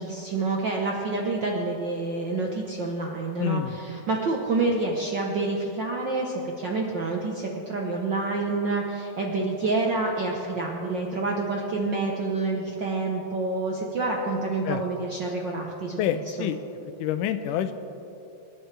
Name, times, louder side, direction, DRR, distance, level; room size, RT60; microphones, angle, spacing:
voice 1, 0.0-16.0, right 3 dB, 75° right, 0 dB, 1.0 m, -28 dB
voice 2, 3.4-3.8 14.6-14.8 16.0-16.6 17.0-17.7, left 10 dB, 90° left, 10 dB, 2.2 m, -27 dB
26.5 x 10.5 x 3.4 m, 2.9 s
omnidirectional pair, 3.6 m